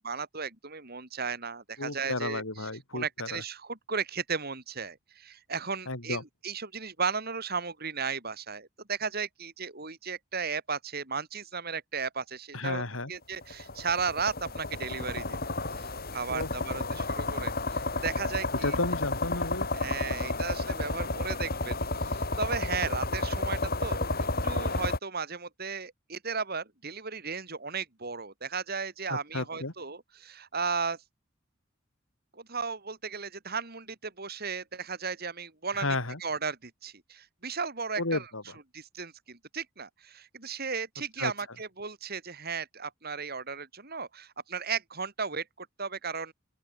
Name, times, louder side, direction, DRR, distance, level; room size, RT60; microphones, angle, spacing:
voice 1, 0.0-2.4 2.9-12.8 13.1-18.8 19.7-31.0 32.3-36.0 36.2-38.2 38.7-46.3, right 5 dB, 50° right, 4.5 m, -35 dB
voice 2, 1.8-3.4 5.9-6.2 12.5-13.1 16.3-17.0 18.6-19.7 29.1-29.7 35.7-36.2 38.0-38.6 41.2-41.3, left 2 dB, 85° left, 4.3 m, -33 dB
sound 1, 13.4-25.0, left 2 dB, 50° left, 7.7 m, -31 dB
open air
head